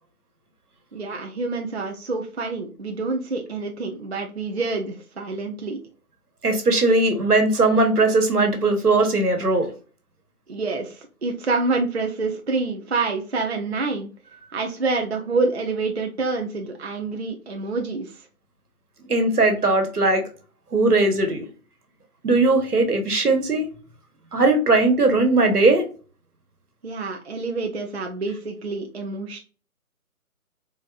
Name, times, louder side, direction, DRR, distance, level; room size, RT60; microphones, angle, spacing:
voice 1, 0.9-5.8 10.5-14.1 14.5-18.2 26.8-29.4, right 3 dB, 50° right, 3 dB, 0.5 m, -27 dB
voice 2, 6.4-9.7 19.1-20.2 20.7-21.4 22.2-23.7 24.3-25.8, right 2 dB, 85° right, 5 dB, 1.2 m, -19 dB
4.0 x 2.3 x 2.3 m, 0.37 s
figure-of-eight pair, 160°, 44 cm